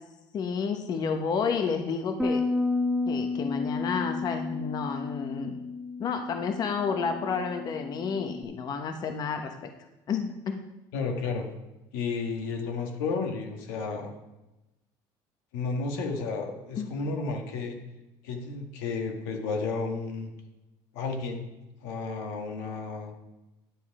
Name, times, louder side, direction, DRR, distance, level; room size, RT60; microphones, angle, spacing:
voice 1, 0.3-2.4 3.1-5.6 6.0-9.7 10.1-10.6 16.8-16.9, left 5 dB, 45° left, 6 dB, 0.9 m, -30 dB
Bass guitar, 2.2-8.4, left 3 dB, ahead, 0.9 m, -32 dB
voice 2, 10.9-11.5 11.9-14.1 15.5-17.8 18.2-20.3 20.9-21.5 21.8-23.1, left 4 dB, 90° left, 3 dB, 1.7 m, -32 dB
10.5 x 7.1 x 4.8 m, 1.0 s
supercardioid pair, 110°, 10 cm